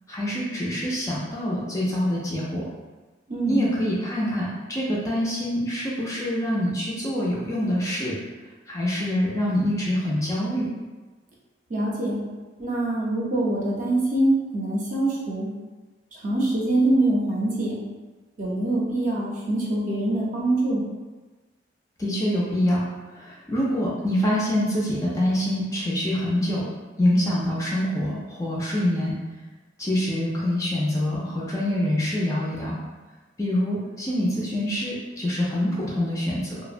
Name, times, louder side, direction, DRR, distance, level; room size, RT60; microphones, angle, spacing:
voice 1, 0.1-2.6 3.5-8.2 8.7-10.7 22.0-22.8 23.1-26.7 27.0-29.2 29.8-32.8 33.4-36.6, left 1 dB, 15° left, -5 dB, 0.3 m, -25 dB
voice 2, 3.3-3.6 11.7-12.2 12.6-15.5 16.1-17.8 18.4-20.8, right 1 dB, 45° right, -5 dB, 0.6 m, -24 dB
2.7 x 2.0 x 2.4 m, 1.3 s
head